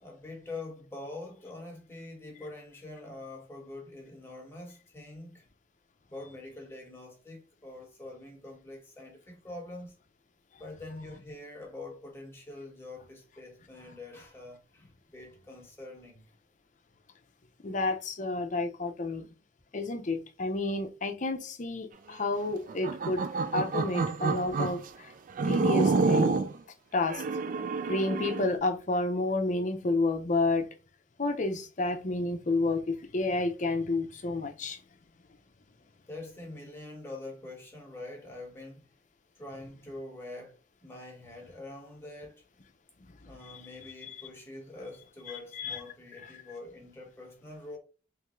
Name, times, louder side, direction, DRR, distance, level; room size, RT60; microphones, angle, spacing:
voice 1, 0.0-5.5 6.1-9.9 10.6-16.2 36.1-38.9 39.4-42.4 43.2-47.8, left 2 dB, 15° left, 1.2 m, -45 dB
voice 2, 17.6-19.3 19.7-23.2 23.5-25.1 25.4-26.4 26.9-27.2 27.9-30.7 31.2-34.8 43.5-43.6 44.0-44.2 45.6-45.8, left 2 dB, 45° left, 0.6 m, -30 dB
sound 1, 22.7-24.8 25.4-26.5 27.1-28.5, right 4 dB, 50° right, 0.4 m, -28 dB
3.6 x 3.2 x 3.0 m
head